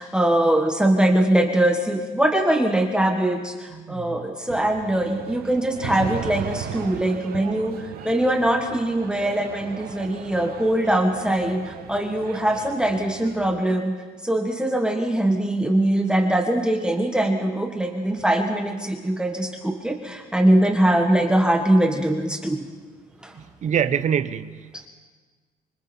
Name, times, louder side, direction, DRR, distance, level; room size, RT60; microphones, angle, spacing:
voice 1, 0.0-22.7 23.2-23.3, right 1 dB, 5° right, 3 dB, 1.7 m, -22 dB
voice 2, 3.7-4.3 23.3-24.5, right 8 dB, 45° right, 11 dB, 0.9 m, -25 dB
sound 1, 4.5-13.6, right 10 dB, 65° right, 1.2 m, -37 dB
25.5 x 25.0 x 4.5 m, 1.4 s
cardioid pair, 110°, 17 cm